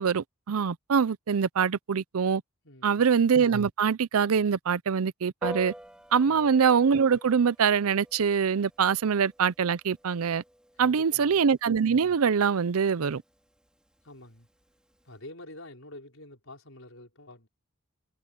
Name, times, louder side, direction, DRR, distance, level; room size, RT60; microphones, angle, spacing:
voice 1, 0.0-2.4 2.8-5.7 6.1-10.4 10.8-13.2, right 6 dB, 80° right, 0.5 m, -24 dB
voice 2, 2.6-3.0 6.2-6.5 10.7-11.4 14.0-14.5 15.0-17.5, left 1 dB, 70° left, 5.2 m, -47 dB
Piano, 5.4-15.2, equal, 5° right, 4.9 m, -47 dB
head